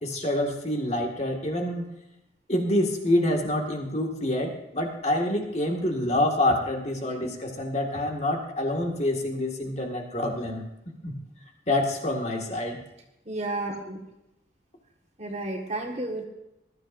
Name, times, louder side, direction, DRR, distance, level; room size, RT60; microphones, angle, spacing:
voice 1, 0.0-1.9 2.5-10.6 11.0-11.2 11.7-12.8, left 1 dB, 35° left, 2 dB, 1.9 m, -27 dB
voice 2, 13.3-14.0 15.2-16.2, right 2 dB, 35° right, 0 dB, 1.7 m, -32 dB
20.5 x 13.0 x 2.6 m, 0.88 s
head